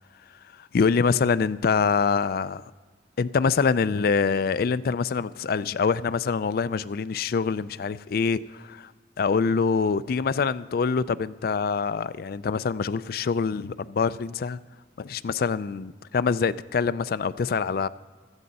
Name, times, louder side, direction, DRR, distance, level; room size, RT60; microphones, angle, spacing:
voice 1, 0.6-2.6 3.2-8.9 9.2-14.6 15.0-17.9, left 5 dB, 55° left, 15 dB, 0.4 m, -25 dB
16.0 x 13.0 x 4.1 m, 1.4 s
head